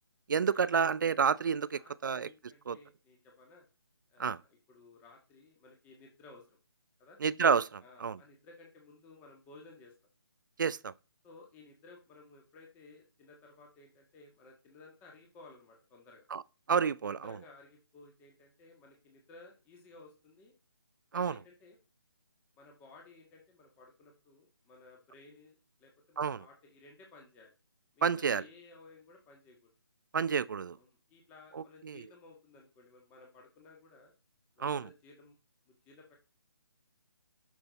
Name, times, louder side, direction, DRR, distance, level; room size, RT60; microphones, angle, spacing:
voice 1, 0.3-2.3 2.7-2.8 4.2-4.4 7.2-8.2 10.6-10.9 16.3-16.4 16.7-17.2 21.1-21.3 26.2-26.4 28.0-28.4 30.1-30.8 31.5-32.0 34.6-34.8, right 6 dB, 50° right, 0.4 m, -29 dB
voice 2, 1.7-3.7 4.1-6.6 7.0-7.2 7.8-9.9 11.2-16.2 17.0-20.5 21.1-21.8 22.6-27.5 27.9-29.7 30.8-34.1 34.5-35.4 35.7-36.2, left 3 dB, 10° left, 1.6 m, -57 dB
10.5 x 6.2 x 4.0 m
figure-of-eight pair, 155°, 13 cm